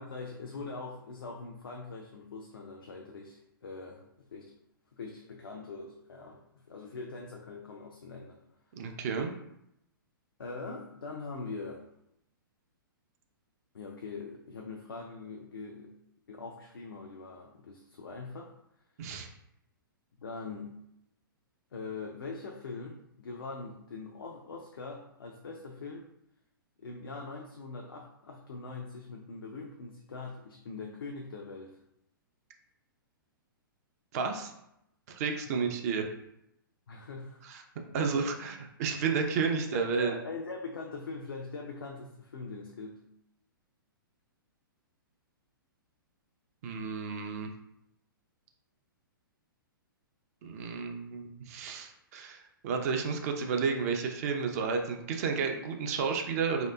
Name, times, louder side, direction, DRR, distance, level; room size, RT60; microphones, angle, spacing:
voice 1, 0.0-4.0 4.3-4.5 4.9-6.4 6.7-8.4 10.4-11.8 13.7-15.9 16.3-18.5 20.2-20.7 21.7-26.1 26.8-31.8 35.6-35.7 36.9-37.4 37.9-38.1 39.7-43.0, left 3 dB, 75° left, 0 dB, 0.4 m, -42 dB
voice 2, 8.8-9.3 19.0-19.3 34.1-34.5 35.1-36.0 37.4-37.6 37.9-40.1 46.6-47.5 50.4-56.7, right 5 dB, 45° right, 4 dB, 0.5 m, -31 dB
3.1 x 2.8 x 2.2 m, 0.79 s
figure-of-eight pair, 115°, 12 cm